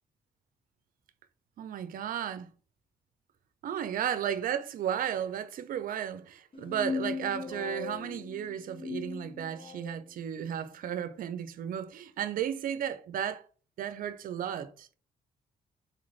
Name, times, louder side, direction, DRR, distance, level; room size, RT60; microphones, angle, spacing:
voice 1, 1.6-2.5 3.6-13.4 13.8-15.0, right 9 dB, 70° right, 0.5 m, -34 dB
sound 1, 6.5-10.0, left 5 dB, 35° left, 0.8 m, -38 dB
4.2 x 2.5 x 3.1 m
cardioid pair, 90°, 15 cm